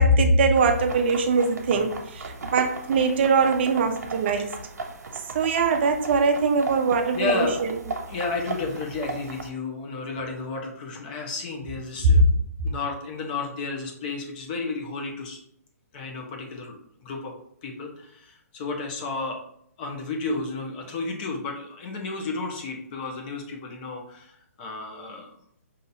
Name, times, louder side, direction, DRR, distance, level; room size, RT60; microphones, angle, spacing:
voice 1, 0.0-4.5 5.3-7.8 12.0-12.2, right 3 dB, 40° right, 6 dB, 0.4 m, -21 dB
sound 1, 0.6-9.5, right 3 dB, 90° right, 0.7 m, -36 dB
voice 2, 7.1-7.6 8.1-12.2 12.6-15.4 15.9-17.3 17.6-19.4 19.8-25.3, left 3 dB, 35° left, 1 dB, 0.9 m, -32 dB
5.4 x 2.7 x 2.7 m, 0.70 s
hypercardioid pair, 155°, 9 cm